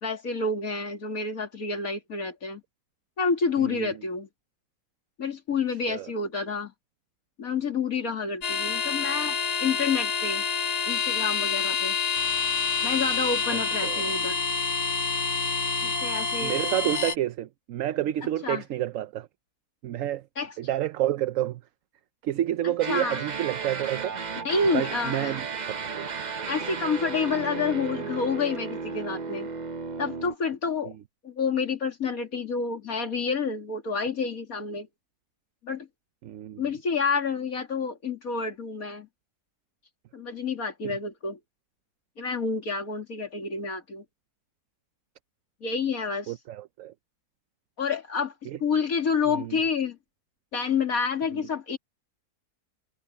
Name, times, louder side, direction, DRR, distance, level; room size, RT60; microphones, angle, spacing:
voice 1, 0.0-2.6 3.2-4.3 5.2-6.7 7.4-10.4 10.8-12.0 12.8-14.4 15.8-16.6 18.4-18.6 20.4-20.5 22.6-23.2 24.4-25.3 26.5-29.5 30.0-30.9 31.2-34.9 35.6-35.9 36.6-39.1 40.1-41.4 42.2-44.0 45.6-46.3 47.8-50.0 50.5-51.8, left 5 dB, 60° left, 2.9 m, -29 dB
sound 1, 8.4-17.2, left 5 dB, 75° left, 2.2 m, -27 dB
voice 2, 13.5-14.1 16.4-19.3 19.8-20.2 20.6-21.6 22.2-24.2 24.7-26.0 36.2-36.6 46.3-46.9 48.5-48.6 49.3-49.6, right 12 dB, 65° right, 0.9 m, -29 dB
sound 2, 22.8-30.3, right 5 dB, 35° right, 0.7 m, -34 dB
omnidirectional pair, 1.7 m